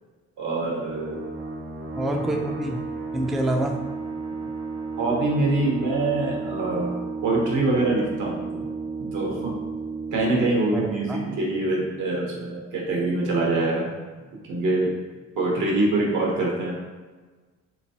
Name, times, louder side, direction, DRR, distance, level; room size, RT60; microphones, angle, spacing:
voice 1, 0.4-1.2 5.0-7.0 7.2-8.6 9.1-9.5 10.1-13.9 14.4-14.9 15.4-16.8, right 2 dB, 85° right, -2 dB, 1.1 m, -24 dB
sound 1, 0.6-11.9, right 4 dB, 50° right, 0.7 m, -33 dB
voice 2, 2.0-2.8 3.1-3.7 10.7-11.2, right 1 dB, ahead, 1 dB, 0.3 m, -26 dB
3.4 x 3.0 x 2.7 m, 1.4 s
cardioid pair, 90°, 30 cm